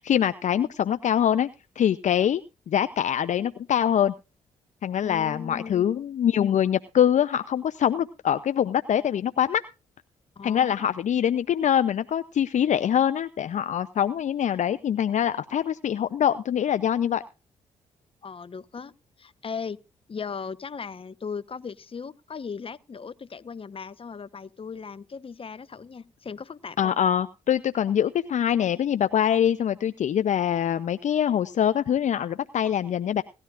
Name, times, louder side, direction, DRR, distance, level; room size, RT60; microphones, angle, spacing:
voice 1, 0.0-1.5 1.8-4.1 4.8-9.6 10.4-17.2 26.8-33.2, left 9 dB, 60° left, 0.7 m, -24 dB
voice 2, 5.0-6.0 10.4-10.8 18.2-18.9 19.2-19.8 20.1-26.9, left 5 dB, 40° left, 1.1 m, -37 dB
18.5 x 13.0 x 2.5 m
hypercardioid pair, 50°, 14 cm